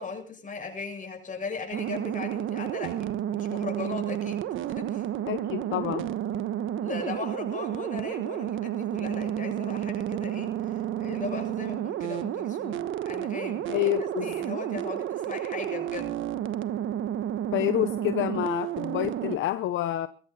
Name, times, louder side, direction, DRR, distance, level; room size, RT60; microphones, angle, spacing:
voice 1, 0.0-5.1 6.8-16.2, left 5 dB, 40° left, 2 dB, 7.7 m, -38 dB
sound 1, 1.7-19.4, right 11 dB, 80° right, 1.2 m, -31 dB
voice 2, 5.3-6.1 13.7-14.3 17.5-20.1, left 14 dB, 80° left, 12 dB, 0.8 m, -28 dB
22.0 x 14.5 x 4.2 m, 0.41 s
cardioid pair, 90°, 20 cm